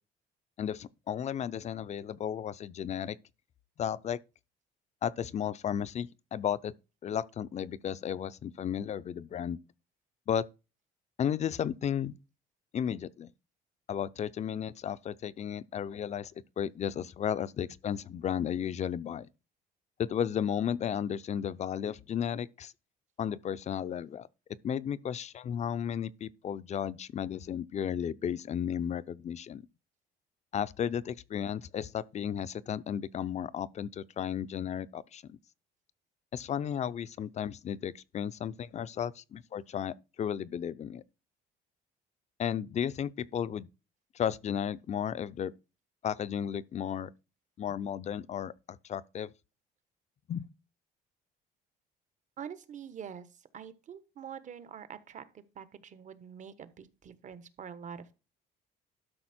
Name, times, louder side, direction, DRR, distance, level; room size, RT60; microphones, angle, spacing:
voice 1, 0.6-3.2 3.8-4.2 5.0-6.7 7.0-9.6 10.3-10.5 11.2-12.1 12.7-13.3 13.9-19.3 20.0-22.7 23.2-24.3 24.6-29.7 30.5-35.4 36.3-41.0 42.4-43.7 44.1-45.5 46.0-47.1 47.6-49.3 50.3-50.4, left 9 dB, 40° left, 0.6 m, -34 dB
voice 2, 52.4-53.3 53.5-58.1, right 8 dB, 45° right, 1.2 m, -45 dB
12.5 x 5.5 x 4.3 m
cardioid pair, 110°, 17 cm